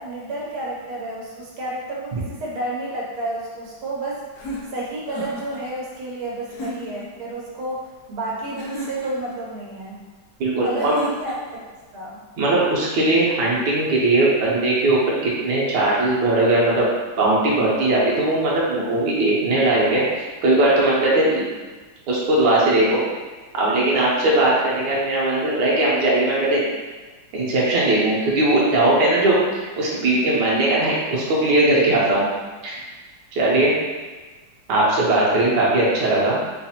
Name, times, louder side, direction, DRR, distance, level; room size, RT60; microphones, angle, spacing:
voice 1, 0.0-4.2 4.7-10.0 10.6-11.3 11.9-12.2, right 2 dB, 80° right, -5 dB, 1.6 m, -30 dB
sound 1, 4.3-5.6 6.5-7.1 8.6-9.3 10.8-11.6, left 1 dB, 70° left, 0.9 m, -34 dB
voice 2, 10.4-11.0 12.4-16.8 17.2-20.0 20.4-21.4 22.1-23.0 23.5-26.7 27.3-32.3 32.6-32.8 33.3-33.7 34.7-36.4, right 2 dB, 65° right, -6 dB, 1.4 m, -19 dB
4.7 x 2.6 x 2.8 m, 1.3 s
omnidirectional pair, 2.3 m